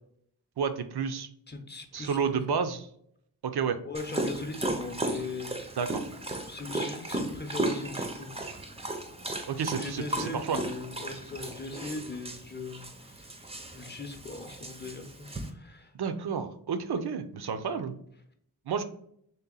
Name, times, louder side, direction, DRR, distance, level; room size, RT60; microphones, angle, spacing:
voice 1, 0.6-1.3 1.9-2.8 3.4-3.8 5.8-6.1 9.5-10.6 15.9-18.0 18.7-18.8, right 6 dB, 65° right, 9 dB, 0.5 m, -30 dB
voice 2, 1.5-2.2 2.5-2.6 3.8-5.5 6.4-8.4 9.8-13.4 13.7-15.9, left 3 dB, 25° left, 5 dB, 0.6 m, -39 dB
Dog, 3.9-15.5, right 2 dB, 15° right, 0.5 m, -35 dB
3.3 x 2.9 x 3.7 m, 0.68 s
wide cardioid pair, 70°, 42 cm